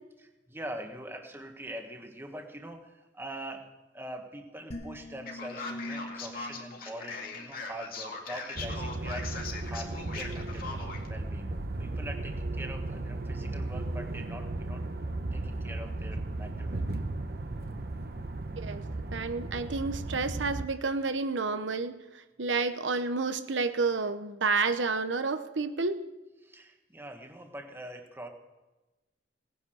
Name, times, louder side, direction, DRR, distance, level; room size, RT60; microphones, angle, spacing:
voice 1, 0.2-11.5 11.8-14.8 15.3-17.0 26.4-28.3, right 1 dB, 15° right, 4 dB, 1.5 m, -43 dB
sound 1, 4.7-8.0, left 1 dB, 35° left, 1.8 m, -44 dB
Male speech man speaking, 5.3-11.1, left 4 dB, 50° left, 2.3 m, -40 dB
sound 2, 8.5-20.7, right 2 dB, 55° right, 1.0 m, -35 dB
voice 2, 19.1-22.0 22.4-26.0, right 4 dB, 90° right, 9 dB, 0.9 m, -30 dB
18.0 x 10.0 x 6.4 m, 1.1 s
head